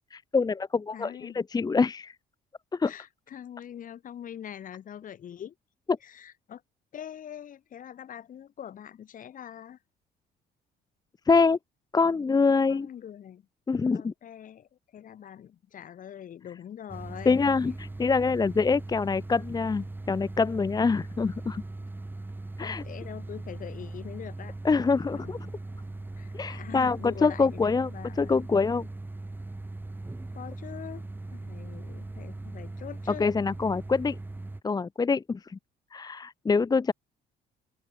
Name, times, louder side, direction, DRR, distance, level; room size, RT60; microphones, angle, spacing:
voice 1, 0.1-2.1 2.7-2.9 11.3-11.6 11.9-12.9 13.7-14.1 17.2-21.6 22.6-22.8 24.6-25.4 26.3-27.9 28.2-28.9 33.2-34.2 34.6-35.6 35.9-36.9, left 4 dB, 25° left, 1.3 m, -25 dB
voice 2, 0.9-1.4 2.8-5.5 6.0-6.6 6.9-9.8 12.7-13.4 13.9-17.4 22.6-24.6 25.1-25.5 26.2-28.4 30.3-31.0 31.3-33.3, left 9 dB, 50° left, 6.4 m, -43 dB
sound 1, 16.9-34.6, right 2 dB, 10° right, 2.5 m, -39 dB
cardioid pair, 110°, 17 cm